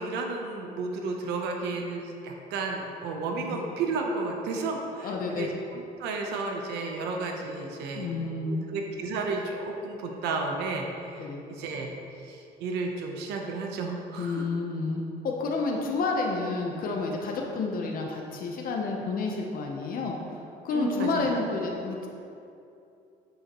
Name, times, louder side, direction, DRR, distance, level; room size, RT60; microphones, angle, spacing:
voice 1, 0.0-8.1 8.5-11.9 12.2-14.5 20.7-21.3, right 3 dB, 85° right, 2 dB, 0.9 m, -33 dB
voice 2, 5.0-5.5 7.9-8.7 11.2-11.4 14.2-20.4 20.6-22.1, left 3 dB, 55° left, 0 dB, 0.8 m, -30 dB
9.8 x 5.5 x 3.0 m, 2.7 s
cardioid pair, 110°, 17 cm